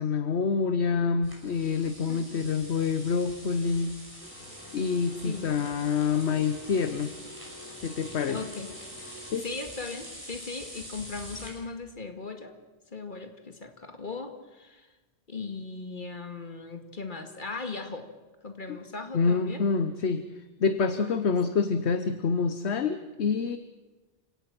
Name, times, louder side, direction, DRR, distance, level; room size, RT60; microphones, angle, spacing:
voice 1, 0.0-3.9 4.7-7.1 7.8-8.4 9.3-9.4 18.7-18.8 19.1-20.2 20.6-23.6, left 5 dB, 65° left, 10 dB, 1.2 m, -27 dB
sound 1, 1.2-11.5, equal, 15° right, 6.4 m, -45 dB
voice 2, 2.1-2.4 5.2-5.6 8.3-8.7 9.4-12.5 12.9-14.9 15.3-18.1 18.4-19.6 21.0-21.1, left 4 dB, 40° left, 6 dB, 2.2 m, -38 dB
sound 2, 4.2-9.4, equal, 10° left, 3.1 m, -48 dB
29.0 x 17.5 x 6.1 m, 1.2 s
omnidirectional pair, 1.2 m